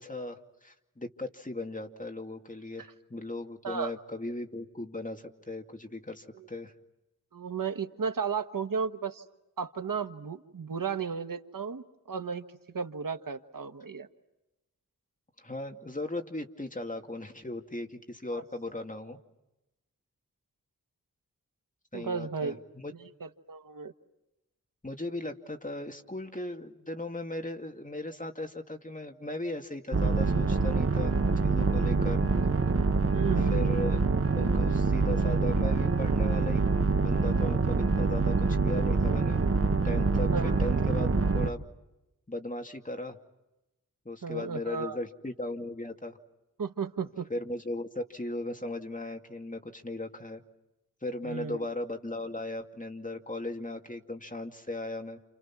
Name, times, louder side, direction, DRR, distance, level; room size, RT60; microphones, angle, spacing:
voice 1, 0.0-6.7 15.4-19.2 21.9-22.9 24.8-31.2 31.4-32.5 33.4-34.0 34.3-39.4 39.8-41.7 42.3-43.2 44.0-46.2 47.3-50.4 51.0-55.2, left 1 dB, 25° left, 4 dB, 2.5 m, -37 dB
voice 2, 7.3-9.2 9.6-12.5 12.7-14.1 18.3-18.4 21.9-22.6 23.2-23.9 33.1-33.7 40.3-40.6 44.2-45.0 46.6-47.3 51.2-51.6, right 6 dB, 85° right, 8 dB, 1.4 m, -34 dB
sound 1, 29.9-41.5, right 4 dB, 45° right, 1.4 m, -25 dB
29.5 x 29.5 x 6.1 m, 0.96 s
wide cardioid pair, 75°, 33 cm